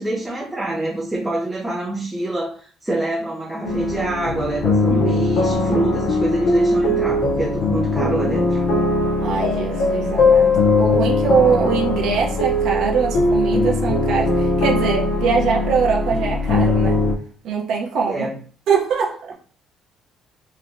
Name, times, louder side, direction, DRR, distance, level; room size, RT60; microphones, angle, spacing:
voice 1, 0.0-8.6 18.1-18.4, right 1 dB, 5° right, -4 dB, 0.5 m, -25 dB
sound 1, 3.6-17.1, left 2 dB, 60° left, 0.5 m, -20 dB
voice 2, 4.9-5.3 9.2-17.0 17.4-18.3 18.7-19.3, right 6 dB, 60° right, -1 dB, 0.7 m, -22 dB
3.0 x 2.1 x 2.5 m, 0.43 s
cardioid pair, 165°, 0 cm